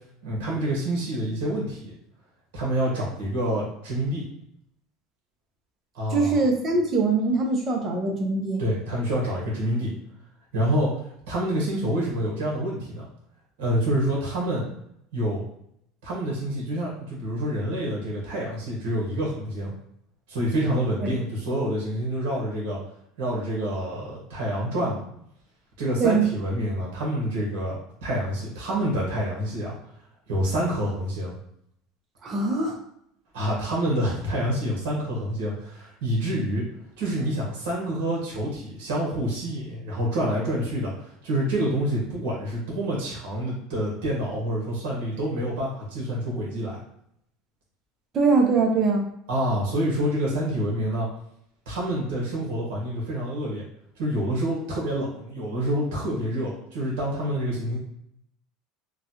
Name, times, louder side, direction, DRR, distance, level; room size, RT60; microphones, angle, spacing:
voice 1, 0.2-1.9 2.5-4.2 5.9-6.4 8.6-9.9 10.5-13.1 13.6-14.6 15.1-15.4 16.0-19.7 20.3-22.8 23.2-25.0 25.8-29.7 30.3-31.3 33.3-36.6 37.0-46.8 49.3-51.1 51.7-53.6 54.0-57.8, equal, 85° right, -4 dB, 1.2 m, -27 dB
voice 2, 6.1-8.6 21.0-21.1 26.0-26.3 32.2-32.8 48.1-49.1, right 4 dB, 35° right, 2 dB, 0.7 m, -22 dB
3.1 x 2.4 x 2.7 m, 0.73 s
supercardioid pair, 130°, 0 cm